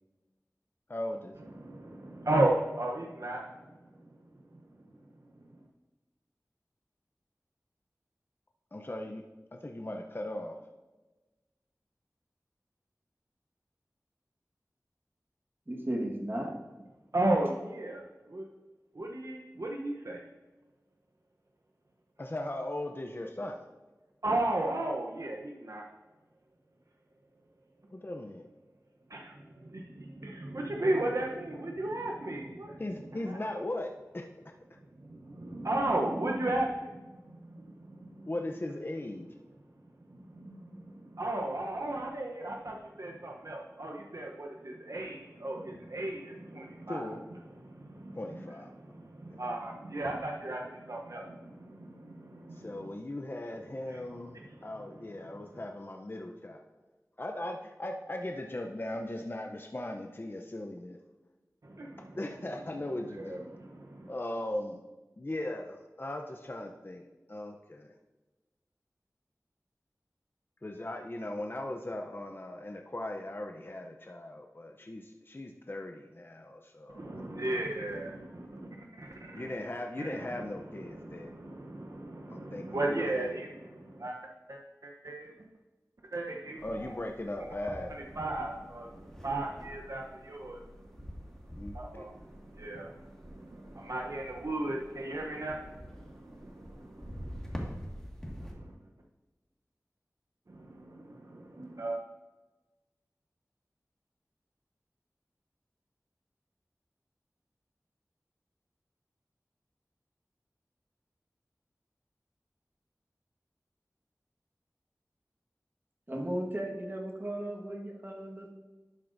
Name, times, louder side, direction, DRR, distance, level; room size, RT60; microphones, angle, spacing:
voice 1, 0.9-1.5 8.7-9.2 9.5-10.6 22.2-23.6 27.9-28.4 32.8-34.3 38.3-39.3 46.9-47.2 48.2-48.7 52.5-56.6 57.2-61.0 62.2-63.5 64.1-64.8 65.2-67.9 70.6-77.3 79.3-81.3 82.3-83.4 86.6-88.0 91.6-92.1, left 1 dB, 35° left, 2 dB, 0.6 m, -38 dB
voice 2, 1.6-3.4 17.1-18.5 18.9-20.2 24.2-25.8 29.1-32.8 33.3-33.4 35.0-37.1 37.5-38.1 40.1-47.2 47.6-48.2 48.8-52.8 53.9-54.0 54.3-54.6 61.6-62.2 63.1-64.1 76.9-79.4 80.0-80.3 81.0-84.2 84.5-85.3 86.1-86.6 87.9-90.6 91.7-93.0 93.2-97.6 100.5-102.0, right 1 dB, 65° right, 0 dB, 0.8 m, -35 dB
voice 3, 15.7-16.6 116.1-118.5, right 1 dB, 35° right, -1 dB, 1.4 m, -35 dB
sound 1, 86.6-98.5, equal, 10° left, 1.8 m, -46 dB
11.5 x 7.4 x 2.6 m, 1.2 s
wide cardioid pair, 45°, 6 cm